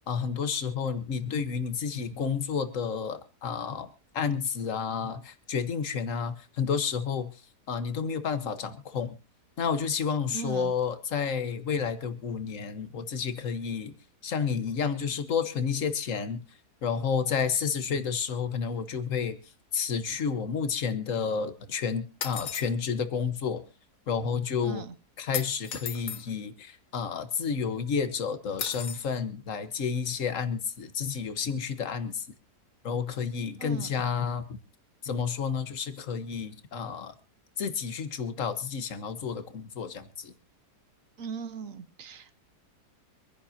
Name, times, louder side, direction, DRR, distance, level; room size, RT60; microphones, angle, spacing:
voice 1, 0.1-3.9 4.1-7.4 7.7-9.2 9.6-13.9 14.2-16.4 16.8-19.4 19.7-23.6 24.1-24.9 25.2-32.3 32.8-34.6 35.0-37.1 37.6-40.3, left 6 dB, 55° left, 11 dB, 1.6 m, -30 dB
voice 2, 10.3-10.7 24.6-24.9 33.6-33.9 41.2-42.4, right 6 dB, 55° right, 12 dB, 1.4 m, -38 dB
sound 1, 22.2-22.7 25.3-26.2 28.6-29.1, left 8 dB, 90° left, 1.7 m, -35 dB
26.0 x 10.5 x 2.8 m, 0.31 s
omnidirectional pair, 1.7 m